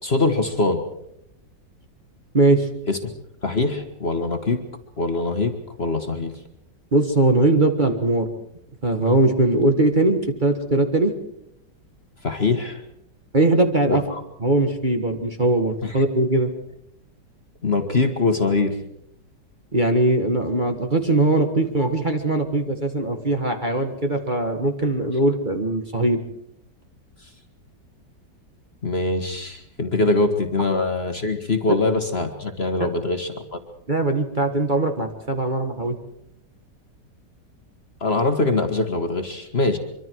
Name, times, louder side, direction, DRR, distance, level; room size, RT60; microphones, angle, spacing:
voice 1, 0.0-0.8 2.9-3.0 3.4-4.6 5.0-5.5 5.8-6.3 12.2-12.8 13.9-14.2 15.8-16.0 17.6-18.7 28.8-33.6 38.0-39.8, left 3 dB, 35° left, 5 dB, 1.6 m, -23 dB
voice 2, 2.3-2.7 6.9-8.3 8.8-11.1 13.3-14.0 14.4-16.5 19.7-26.2 33.9-35.9, right 2 dB, 30° right, 5 dB, 1.6 m, -20 dB
24.5 x 24.0 x 4.7 m, 0.78 s
omnidirectional pair, 1.9 m